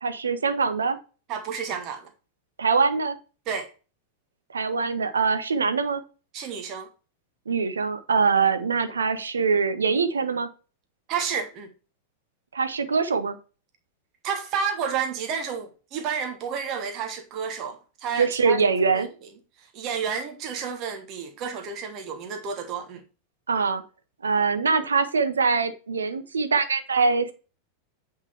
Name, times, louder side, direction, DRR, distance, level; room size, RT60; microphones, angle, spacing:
voice 1, 0.0-1.0 2.6-3.2 4.5-6.0 7.5-10.5 12.5-13.4 18.2-19.1 23.5-23.8 24.2-27.3, right 5 dB, 70° right, 0.7 m, -23 dB
voice 2, 1.3-2.1 3.5-3.7 6.3-6.9 11.1-11.7 14.2-18.6 18.9-19.0 19.7-23.0, right 6 dB, 35° right, 1.2 m, -30 dB
8.0 x 3.8 x 4.2 m
figure-of-eight pair, 90°, 0 cm